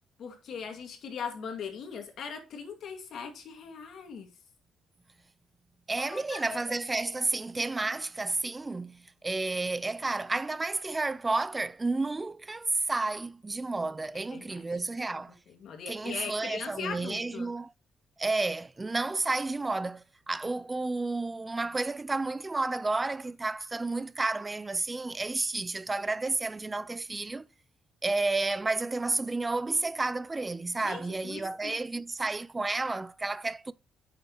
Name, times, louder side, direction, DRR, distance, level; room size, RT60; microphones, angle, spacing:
voice 1, 0.2-4.3 6.0-6.6 14.1-14.6 15.5-17.5 30.8-31.7, left 6 dB, 65° left, 2.2 m, -40 dB
voice 2, 5.9-15.3 15.9-17.7 18.2-27.5 28.0-33.7, right 3 dB, 20° right, 0.3 m, -31 dB
8.5 x 6.4 x 3.1 m
cardioid pair, 90°, 0 cm